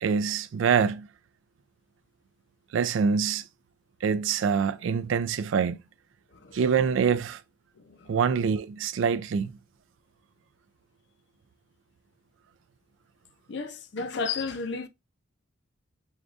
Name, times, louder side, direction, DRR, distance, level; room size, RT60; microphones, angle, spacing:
voice 1, 0.0-1.1 2.7-3.4 4.0-5.8 6.5-7.4 8.1-9.5, right 6 dB, 75° right, 0.3 m, -25 dB
voice 2, 13.5-14.9, left 4 dB, 60° left, 0.5 m, -33 dB
6.2 x 2.3 x 2.4 m
head